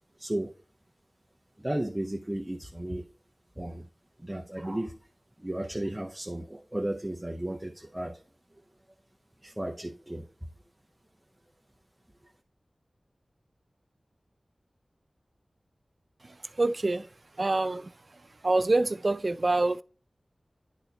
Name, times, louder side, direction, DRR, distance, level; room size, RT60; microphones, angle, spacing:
voice 1, 0.2-0.5 1.6-3.1 3.6-3.9 4.2-5.0 5.4-8.2 9.4-10.3, right 1 dB, 15° right, 0.8 m, -34 dB
voice 2, 16.6-17.1 17.4-17.9 18.4-19.8, right 2 dB, 45° right, 0.4 m, -25 dB
10.5 x 4.2 x 3.9 m
wide cardioid pair, 80°, 0 cm